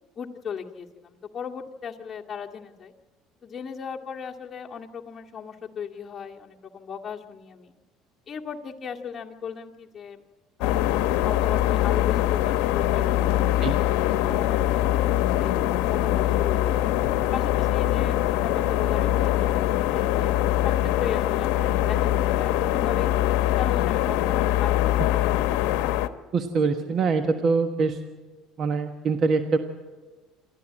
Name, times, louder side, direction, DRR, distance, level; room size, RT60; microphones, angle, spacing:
voice 1, 0.2-2.9 3.4-7.7 8.3-10.2 10.6-15.5 15.9-16.9 17.3-20.3 20.6-23.1 23.6-25.2, left 7 dB, 30° left, -1 dB, 2.2 m, -37 dB
sound 1, 10.6-26.1, left 13 dB, 80° left, 0.9 m, -23 dB
voice 2, 26.3-28.0 28.6-29.6, right 4 dB, 45° right, 7 dB, 1.3 m, -24 dB
28.0 x 13.0 x 8.7 m, 1.3 s
supercardioid pair, 105°, 0 cm